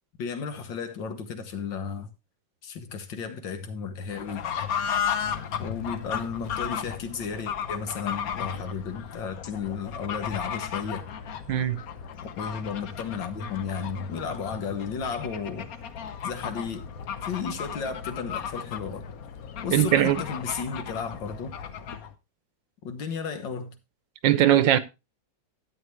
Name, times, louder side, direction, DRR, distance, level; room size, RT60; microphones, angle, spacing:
voice 1, 0.2-2.1 2.6-4.5 5.6-11.1 12.4-15.7 16.2-16.9 17.2-19.1 19.6-21.5 22.8-23.8, left 6 dB, 70° left, 1.9 m, -34 dB
Fowl / Bird, 4.1-22.1, left 8 dB, 55° left, 1.2 m, -35 dB
voice 2, 11.5-11.8 19.7-20.2 24.2-24.8, right 12 dB, 75° right, 1.5 m, -20 dB
12.0 x 8.6 x 3.2 m
omnidirectional pair, 2.1 m